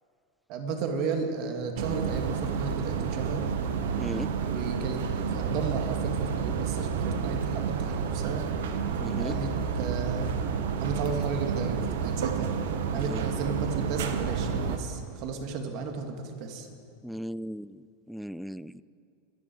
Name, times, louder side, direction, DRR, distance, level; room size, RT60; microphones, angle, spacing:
voice 1, 0.5-3.4 4.5-5.0 5.3-8.5 9.2-10.3 10.8-12.5 12.9-16.7, right 4 dB, 55° right, 4 dB, 2.3 m, -34 dB
sound 1, 1.8-14.8, right 6 dB, 75° right, 1.2 m, -30 dB
voice 2, 3.9-4.3 9.0-9.3 12.9-13.2 17.0-17.8 18.1-18.8, equal, ahead, 18 dB, 0.4 m, -36 dB
25.0 x 10.5 x 4.7 m, 2.4 s
hypercardioid pair, 100°, 0 cm